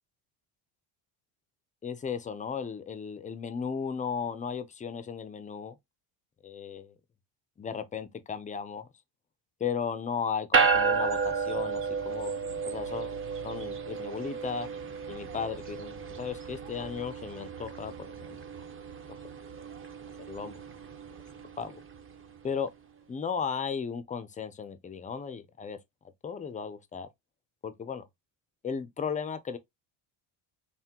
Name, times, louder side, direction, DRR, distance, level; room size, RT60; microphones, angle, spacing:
voice 1, 1.8-5.7 6.4-6.9 7.6-8.9 9.6-12.3 12.6-13.2 13.4-14.7 15.1-18.4 20.3-20.6 21.6-21.8 22.4-22.7 23.1-25.8 26.2-27.1 27.6-28.0 28.6-29.6, left 6 dB, 15° left, 0.4 m, -35 dB
sound 1, 10.5-22.1, right 5 dB, 25° right, 0.6 m, -32 dB
5.7 x 2.2 x 2.8 m
cardioid pair, 135°, 48 cm